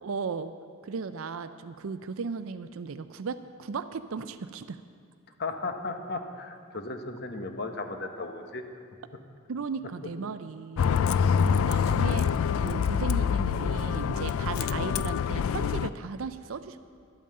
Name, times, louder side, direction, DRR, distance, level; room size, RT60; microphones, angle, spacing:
voice 1, 0.0-0.5 0.8-4.8 9.5-12.4 12.6-16.8, right 5 dB, 70° right, 12 dB, 0.5 m, -36 dB
voice 2, 5.4-8.6 11.1-11.2, left 3 dB, 50° left, 6 dB, 1.1 m, -35 dB
Bus, 10.8-15.9, left 7 dB, 70° left, 0.3 m, -26 dB
11.5 x 9.1 x 7.7 m, 2.2 s
head